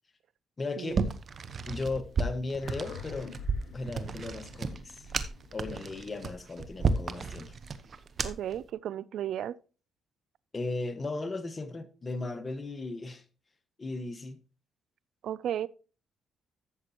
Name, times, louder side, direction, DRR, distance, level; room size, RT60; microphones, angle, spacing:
voice 1, 0.6-1.0 1.7-3.3 3.7-5.1 5.5-7.5 10.5-13.2 13.8-14.4, left 3 dB, 30° left, 1.3 m, -36 dB
sound 1, 0.9-8.6, right 4 dB, 45° right, 1.0 m, -33 dB
sound 2, 2.6-7.4, left 5 dB, 75° left, 3.7 m, -48 dB
voice 2, 8.2-9.6 15.2-15.7, right 10 dB, 70° right, 0.4 m, -34 dB
13.0 x 7.7 x 2.9 m
cardioid pair, 90°, 0 cm